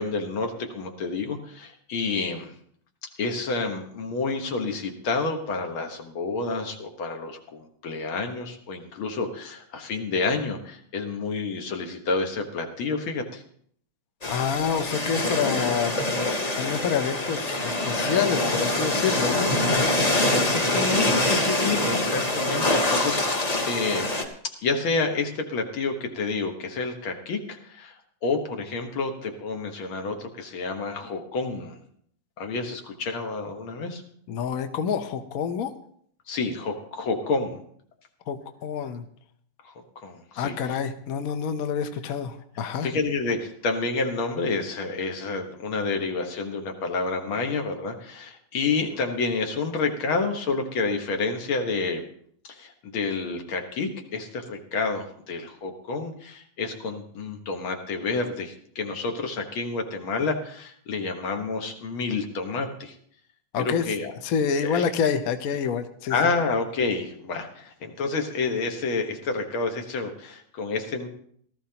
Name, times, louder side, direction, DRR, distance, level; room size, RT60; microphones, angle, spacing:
voice 1, 0.0-2.5 3.2-13.4 20.0-24.1 24.6-28.0 28.2-31.8 32.4-34.0 36.3-37.6 39.6-40.8 42.8-52.0 52.4-62.9 63.6-64.1 64.6-64.8 66.1-71.1, left 4 dB, 75° left, 4 dB, 2.2 m, -29 dB
sound 1, 14.2-24.2, left 1 dB, 30° left, 0.8 m, -25 dB
voice 2, 14.3-19.5 34.3-35.7 38.3-38.4 38.6-39.0 40.4-42.9 63.5-63.9 64.2-66.1, left 7 dB, 60° left, 9 dB, 1.0 m, -27 dB
17.5 x 13.5 x 2.9 m, 0.63 s
omnidirectional pair, 2.3 m